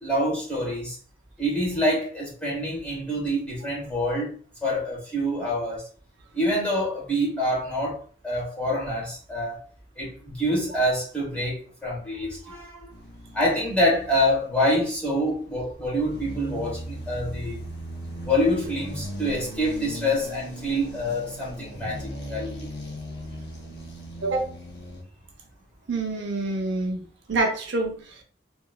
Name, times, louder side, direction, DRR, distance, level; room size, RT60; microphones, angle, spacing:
voice 1, 0.0-1.0 1.4-4.3 4.6-5.9 6.3-9.6 10.0-12.9 13.3-17.6 18.2-22.7, equal, 5° left, 1.0 m, -26 dB
sound 1, 12.9-14.6 15.2-25.0, equal, 55° left, 0.6 m, -38 dB
voice 2, 24.2-24.5 25.9-28.2, right 2 dB, 70° right, 0.6 m, -27 dB
2.9 x 2.3 x 2.3 m
head